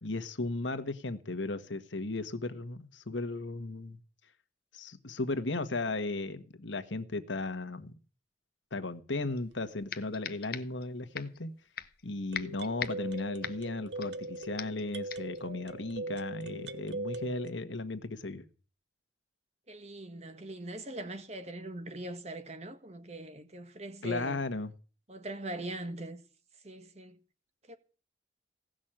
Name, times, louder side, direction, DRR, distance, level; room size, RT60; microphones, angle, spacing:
voice 1, 0.0-4.0 4.7-7.9 8.7-11.5 12.0-18.5 24.0-24.7, left 2 dB, 85° left, 1.4 m, -36 dB
sound 1, 9.4-9.5 9.9-10.9 11.1-11.4 11.8-12.1 12.3-14.3 14.6-14.8 15.1-15.4, left 8 dB, 55° left, 1.0 m, -40 dB
sound 2, 9.5-9.6 12.3-17.5, right 2 dB, 70° right, 1.0 m, -40 dB
voice 2, 19.7-24.4 25.1-26.2 26.6-27.2 27.7-27.8, right 1 dB, 35° right, 1.6 m, -41 dB
17.0 x 6.4 x 8.9 m
head